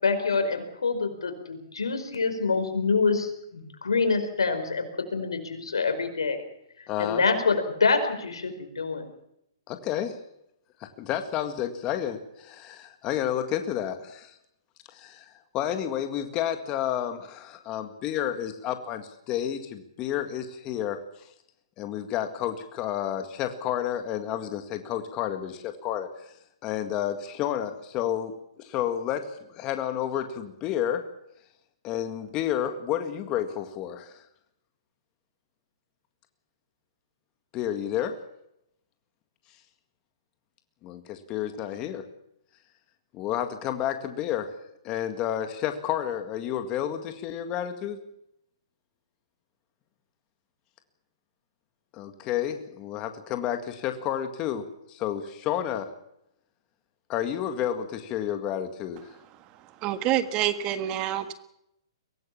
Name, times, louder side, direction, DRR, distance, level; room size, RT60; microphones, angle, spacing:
voice 1, 0.0-4.9 5.1-6.4 6.8-9.0, left 4 dB, 90° left, 6 dB, 5.0 m, -26 dB
voice 2, 6.9-7.2 9.7-10.2 10.8-14.4 14.9-21.0 21.8-26.1 26.6-31.0 31.8-34.2 37.5-38.2 40.8-42.1 43.1-44.5 44.8-48.0 51.9-55.9 57.1-59.2, left 10 dB, 30° left, 7 dB, 1.9 m, -30 dB
voice 3, 59.8-61.3, right 12 dB, 30° right, 11 dB, 1.5 m, -27 dB
23.5 x 17.5 x 7.3 m, 0.78 s
hypercardioid pair, 140°, 3 cm